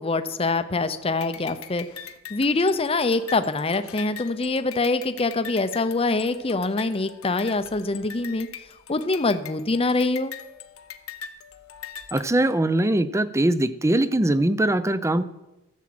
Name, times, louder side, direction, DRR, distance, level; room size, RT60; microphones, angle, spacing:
voice 1, 0.0-1.9 2.3-8.5 8.9-10.3, left 3 dB, 25° left, 10 dB, 0.6 m, -24 dB
sound 1, 1.2-12.2, left 8 dB, 85° left, 0.9 m, -42 dB
voice 2, 12.1-15.2, right 1 dB, 15° right, 14 dB, 0.5 m, -21 dB
14.0 x 7.3 x 7.6 m, 0.97 s
head